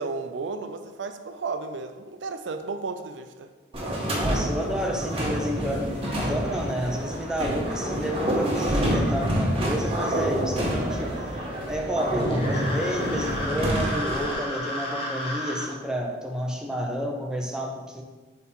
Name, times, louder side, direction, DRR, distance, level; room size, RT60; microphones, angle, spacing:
voice 1, 0.0-3.5, right 4 dB, 80° right, 8 dB, 0.4 m, -33 dB
sound 1, 3.7-14.3, equal, 30° right, 1.3 m, -27 dB
voice 2, 4.1-11.2 11.7-18.0, equal, 5° right, 0 dB, 0.6 m, -30 dB
sound 2, 12.2-15.7, left 1 dB, 30° left, 0.9 m, -33 dB
4.4 x 4.2 x 5.4 m, 1.3 s
head